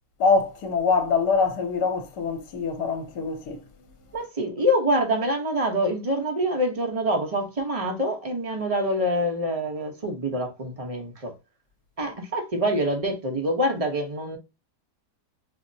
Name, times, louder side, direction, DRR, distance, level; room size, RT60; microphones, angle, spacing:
voice 1, 0.2-3.6, left 4 dB, 75° left, 1.3 m, -24 dB
voice 2, 4.1-11.3 12.0-14.4, equal, 30° right, 0.7 m, -26 dB
5.1 x 2.1 x 2.6 m
omnidirectional pair, 1.8 m